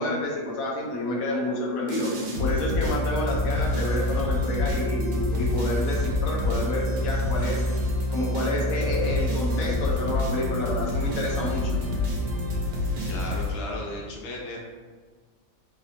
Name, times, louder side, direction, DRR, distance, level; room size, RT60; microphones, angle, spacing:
voice 1, 0.0-2.1 2.4-7.6 8.1-11.8, left 1 dB, 85° left, -2 dB, 1.1 m, -29 dB
sound 1, 1.9-14.0, left 1 dB, 65° right, 0.9 m, -27 dB
voice 2, 13.0-14.6, left 2 dB, 60° left, -2 dB, 0.7 m, -35 dB
3.3 x 2.4 x 2.5 m, 1.5 s
omnidirectional pair, 1.5 m